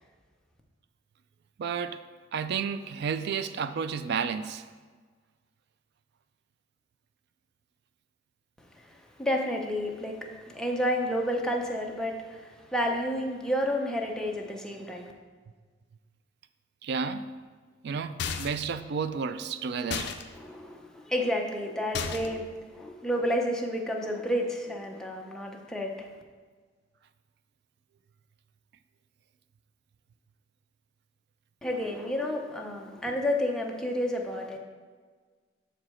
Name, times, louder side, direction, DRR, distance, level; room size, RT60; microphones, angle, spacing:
voice 1, 1.6-2.0 2.3-4.7 16.8-17.2 17.8-20.1, right 6 dB, 55° right, 11 dB, 0.3 m, -31 dB
voice 2, 8.8-15.1 20.3-22.5 22.7-26.1 31.6-34.6, equal, 5° left, 0 dB, 0.6 m, -30 dB
sound 1, 18.2-18.7 19.9-20.2 21.9-22.4, left 6 dB, 60° left, 0.5 m, -33 dB
6.5 x 4.9 x 4.3 m, 1.5 s
head